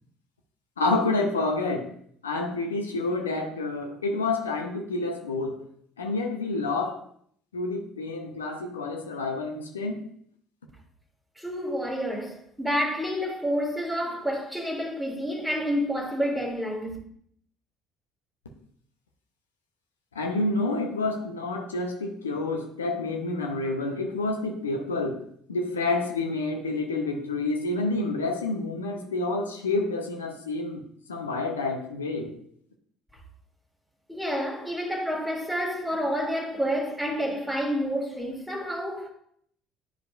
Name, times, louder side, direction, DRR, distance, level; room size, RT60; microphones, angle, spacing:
voice 1, 0.8-1.9 2.2-5.6 6.0-7.0 7.5-10.0 20.1-25.2 25.5-30.8 31.1-32.3, left 2 dB, 85° left, 0.7 m, -28 dB
voice 2, 11.4-17.0 34.1-39.1, equal, ahead, 1.8 m, -29 dB
10.0 x 4.9 x 2.3 m
figure-of-eight pair, 55°, 0 cm